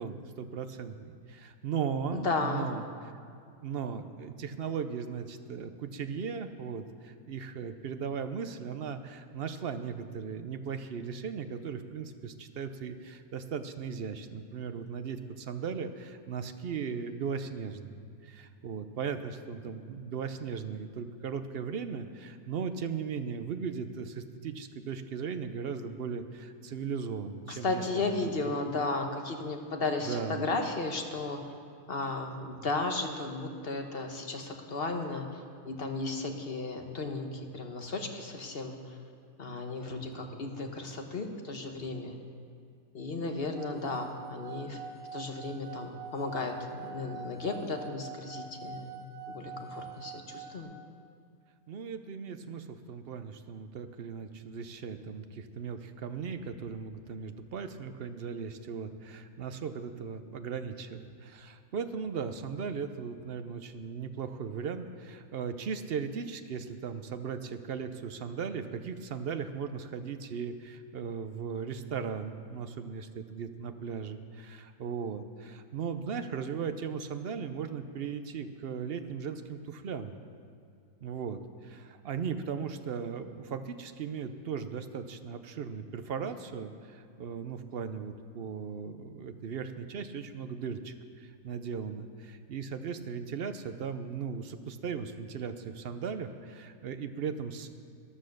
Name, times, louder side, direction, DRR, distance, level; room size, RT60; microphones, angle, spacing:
voice 1, 0.0-3.1 3.6-28.5 30.1-30.5 40.1-40.6 51.7-80.2 81.0-97.7, right 6 dB, 55° right, 9 dB, 0.7 m, -37 dB
voice 2, 2.1-2.7 27.5-31.4 31.9-39.0 39.4-42.2 42.9-44.8 45.1-50.7, left 3 dB, 45° left, 4 dB, 1.1 m, -34 dB
sound 1, 43.5-50.6, right 6 dB, 70° right, 1.7 m, -45 dB
12.5 x 11.0 x 6.5 m, 2.4 s
omnidirectional pair, 1.6 m